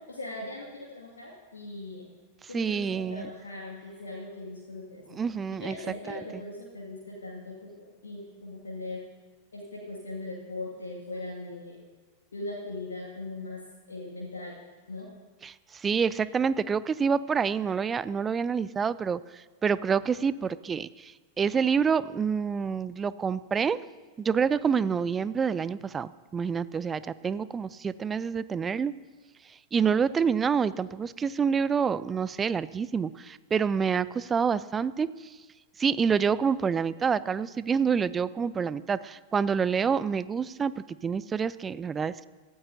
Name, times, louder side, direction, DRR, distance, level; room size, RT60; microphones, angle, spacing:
voice 1, 0.0-2.1 2.5-5.2 5.5-9.0 9.5-11.8 12.3-13.6 13.9-14.6 14.9-15.1, left 2 dB, 70° left, -4 dB, 2.1 m, -39 dB
voice 2, 2.5-3.3 5.1-5.8 6.1-6.2 15.4-23.8 24.2-28.9 29.7-35.3 35.8-42.3, right 6 dB, 20° right, 17 dB, 0.4 m, -27 dB
24.0 x 13.5 x 2.7 m, 1.4 s
figure-of-eight pair, 90°, 0 cm